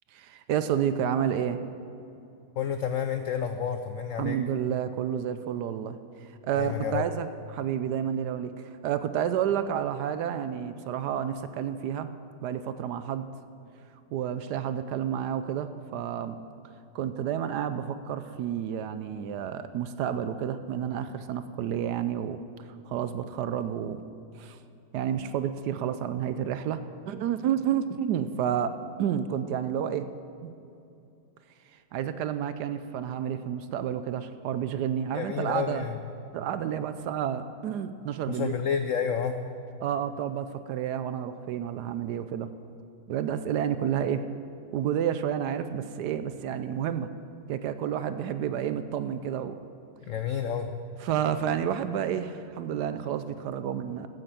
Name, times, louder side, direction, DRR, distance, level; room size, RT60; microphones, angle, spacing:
voice 1, 0.1-1.6 4.2-12.1 12.4-13.3 14.1-16.4 16.9-24.0 24.4-24.6 24.9-30.1 30.4-30.5 31.7-35.8 36.3-38.6 39.8-42.5 43.1-44.3 44.7-47.1 47.5-49.6 51.0-54.1, right 9 dB, 70° right, 11 dB, 1.0 m, -30 dB
voice 2, 2.6-4.4 6.6-7.0 35.1-36.0 38.3-39.4 50.1-50.7, left 7 dB, 80° left, 8 dB, 0.7 m, -30 dB
14.5 x 7.8 x 7.6 m, 2.7 s
omnidirectional pair, 2.1 m